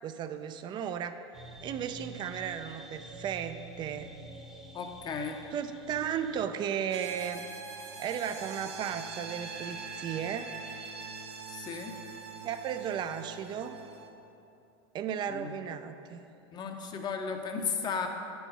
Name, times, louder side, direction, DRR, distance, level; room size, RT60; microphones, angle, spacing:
voice 1, 0.0-1.2 1.6-4.1 5.5-7.4 8.0-10.5 12.4-13.8 14.9-16.2, right 8 dB, 35° right, 9 dB, 0.4 m, -35 dB
sound 1, 1.3-6.5, right 2 dB, ahead, 0.9 m, -48 dB
voice 2, 4.7-5.4 11.5-11.9 15.3-15.5 16.5-18.1, left 5 dB, 30° left, 5 dB, 0.8 m, -35 dB
sound 2, 6.9-14.1, right 4 dB, 90° right, 0.7 m, -43 dB
8.8 x 4.7 x 5.4 m, 2.9 s
hypercardioid pair, 105°, 14 cm